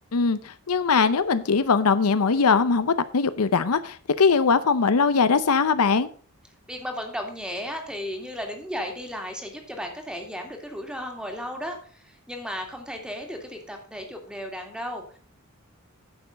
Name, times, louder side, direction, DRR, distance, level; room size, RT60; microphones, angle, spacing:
voice 1, 0.1-6.1, left 5 dB, 75° left, 13 dB, 0.7 m, -21 dB
voice 2, 6.7-15.2, equal, 5° right, 3 dB, 2.1 m, -35 dB
10.0 x 7.0 x 5.2 m, 0.43 s
head